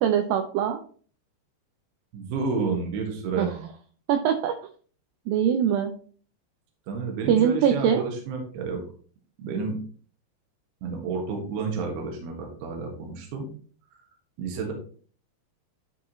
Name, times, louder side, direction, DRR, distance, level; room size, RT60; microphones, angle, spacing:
voice 1, 0.0-0.8 3.4-3.6 4.1-4.6 5.3-5.9 7.3-8.0, right 8 dB, 90° right, 7 dB, 2.0 m, -22 dB
voice 2, 2.1-3.5 6.9-8.8 9.4-9.8 10.8-13.5 14.4-14.7, right 4 dB, 70° right, 2 dB, 3.3 m, -30 dB
12.5 x 4.8 x 3.1 m, 0.43 s
omnidirectional pair, 4.9 m